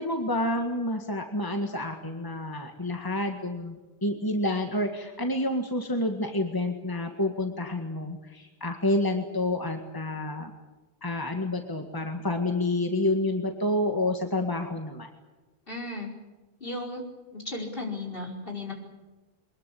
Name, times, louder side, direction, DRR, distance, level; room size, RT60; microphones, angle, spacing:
voice 1, 0.0-10.5 11.0-15.1, left 1 dB, 20° left, 4 dB, 1.9 m, -29 dB
voice 2, 15.7-16.1 16.6-17.0 17.3-18.7, left 2 dB, 60° left, 1 dB, 5.3 m, -35 dB
23.5 x 21.0 x 8.7 m, 1.2 s
omnidirectional pair, 1.0 m